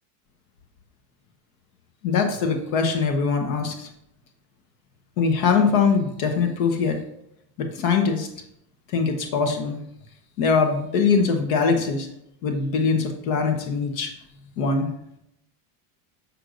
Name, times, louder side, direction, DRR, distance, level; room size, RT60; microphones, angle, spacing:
voice 1, 2.0-3.9 5.2-7.0 7.6-8.3 8.9-9.8 10.4-12.1 12.4-14.1 14.6-14.9, left 5 dB, 60° left, 5 dB, 1.2 m, -22 dB
6.5 x 6.5 x 2.6 m, 0.77 s
supercardioid pair, 150°, 48 cm